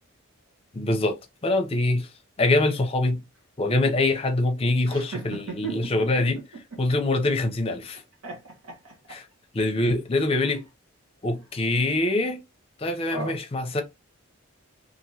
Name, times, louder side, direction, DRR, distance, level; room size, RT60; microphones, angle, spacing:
voice 1, 0.7-2.1 2.4-3.2 3.6-6.4 6.8-8.0 9.1-9.2 9.5-10.7 11.2-12.4 12.8-13.8, left 2 dB, 25° left, 0.5 m, -24 dB
voice 2, 4.9-6.1 8.2-8.9 13.1-13.3, right 4 dB, 80° right, 1.1 m, -36 dB
2.9 x 2.6 x 2.7 m
head